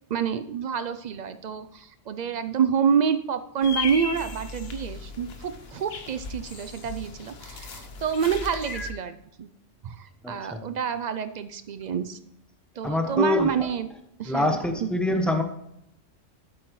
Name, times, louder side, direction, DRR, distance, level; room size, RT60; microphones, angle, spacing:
voice 1, 0.1-9.1 9.4-9.5 9.8-12.2 12.8-13.9 14.2-14.9, right 7 dB, 70° right, 0.4 m, -28 dB
sound 1, 3.6-8.9, left 4 dB, 55° left, 1.1 m, -36 dB
voice 2, 10.2-10.6 12.8-13.5 14.3-15.4, left 1 dB, ahead, 0.9 m, -25 dB
11.5 x 8.6 x 3.1 m
omnidirectional pair, 1.3 m